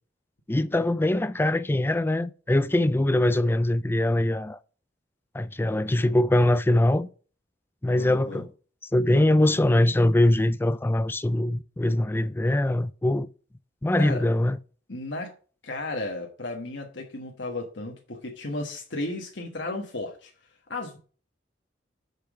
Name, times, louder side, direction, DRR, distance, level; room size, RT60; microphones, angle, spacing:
voice 1, 0.5-4.6 5.3-7.1 7.8-8.5 8.9-13.3 13.8-14.6, left 1 dB, 15° left, 0.4 m, -22 dB
voice 2, 7.9-8.4 14.0-14.2 14.9-15.3 15.6-20.3 20.7-21.0, left 2 dB, 75° left, 1.4 m, -34 dB
6.7 x 6.1 x 5.0 m
head